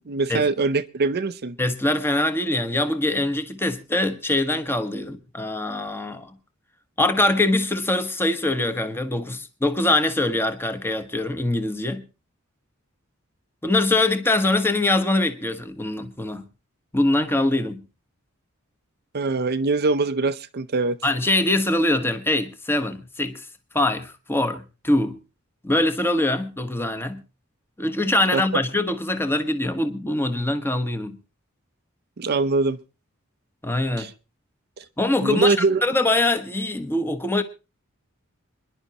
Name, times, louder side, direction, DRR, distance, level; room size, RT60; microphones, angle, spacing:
voice 1, 0.1-1.6 19.1-21.0 28.3-28.4 32.2-32.8 34.0-34.1 34.8-34.9 35.2-35.8, right 3 dB, 50° right, 0.6 m, -23 dB
voice 2, 1.6-6.3 7.0-12.0 13.6-16.4 16.9-17.8 21.0-23.5 23.7-25.2 25.6-27.2 27.8-31.2 33.6-34.1 35.0-35.6 35.8-37.4, left 2 dB, 10° left, 1.2 m, -23 dB
26.5 x 11.0 x 2.9 m
head